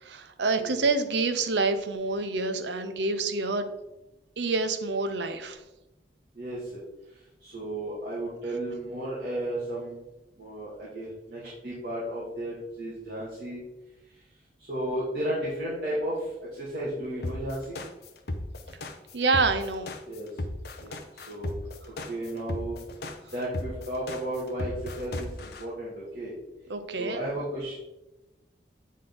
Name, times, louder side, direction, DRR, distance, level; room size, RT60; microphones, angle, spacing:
voice 1, 0.0-3.7 4.4-5.6 19.1-19.9 26.7-27.2, right 3 dB, 80° right, 9 dB, 0.7 m, -27 dB
voice 2, 6.4-6.8 7.4-10.0 10.4-13.6 14.7-17.8 20.1-20.3 20.8-21.5 22.1-22.8 23.3-26.3 27.0-27.7, right 1 dB, 55° right, -7 dB, 1.9 m, -34 dB
sound 1, 17.2-25.6, left 1 dB, 60° left, 0.7 m, -35 dB
8.3 x 3.9 x 3.9 m, 0.96 s
head